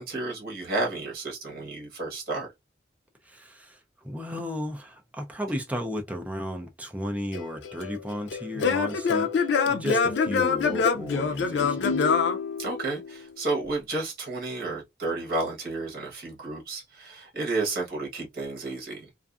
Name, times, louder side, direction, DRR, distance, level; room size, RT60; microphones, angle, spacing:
voice 1, 0.0-2.5 12.6-19.1, right 2 dB, 55° right, 1.1 m, -31 dB
voice 2, 3.2-12.1, equal, 10° right, 0.4 m, -34 dB
Singing / Plucked string instrument, 7.3-13.2, left 5 dB, 90° left, 0.4 m, -25 dB
2.5 x 2.4 x 2.4 m
head